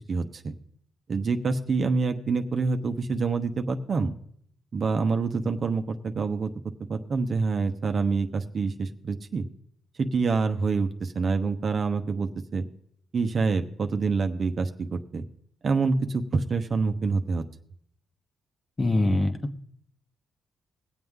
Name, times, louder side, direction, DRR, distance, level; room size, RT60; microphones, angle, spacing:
voice 1, 0.1-0.5 1.1-4.1 4.7-6.5 6.9-9.4 10.0-12.6 13.1-15.2 15.6-17.4, right 4 dB, 50° right, 6 dB, 1.0 m, -26 dB
voice 2, 18.8-19.6, left 2 dB, 30° left, 7 dB, 1.3 m, -24 dB
21.5 x 7.8 x 3.7 m, 0.67 s
cardioid pair, 80°, 0 cm